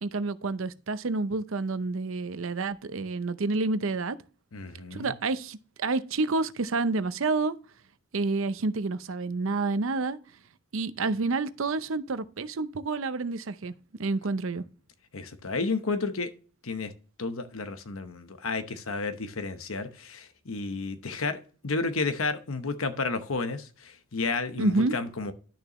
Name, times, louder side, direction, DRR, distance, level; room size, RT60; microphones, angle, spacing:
voice 1, 0.0-4.2 4.9-7.6 8.1-10.2 10.7-13.7 14.0-14.6 24.6-24.9, right 3 dB, 70° right, 0.6 m, -29 dB
voice 2, 4.5-5.1 15.1-16.3 16.6-16.9 17.2-21.4 21.6-25.3, left 3 dB, 80° left, 0.9 m, -31 dB
11.5 x 6.7 x 3.1 m
head